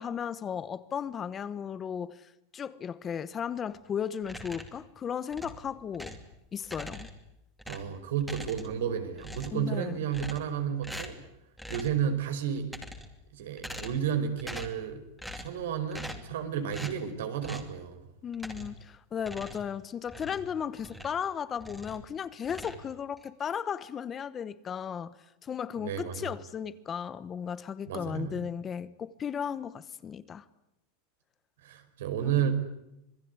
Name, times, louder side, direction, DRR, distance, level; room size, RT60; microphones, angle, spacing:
voice 1, 0.0-6.1 6.5-7.1 9.5-10.0 18.2-25.1 25.4-30.4 32.2-32.5, left 8 dB, 20° left, 1.0 m, -35 dB
sound 1, 4.2-4.8 5.3-6.3 6.6-7.3 7.6-8.9 9.2-9.7 10.1-10.6 10.8-11.3 11.6-12.0 12.6-13.2 13.6-14.1 14.4-14.8 15.2-15.6 15.9-16.3 16.7-17.0 17.4-17.7 18.3-18.8 19.2-21.2 21.6-22.1 22.4-23.3, equal, ahead, 2.7 m, -43 dB
voice 2, 7.7-11.2 11.7-12.7 13.3-15.0 15.4-18.1 25.8-26.3 27.9-28.3 31.6-32.5, right 8 dB, 85° right, 5.2 m, -32 dB
27.0 x 20.0 x 9.7 m
supercardioid pair, 155°, 0 cm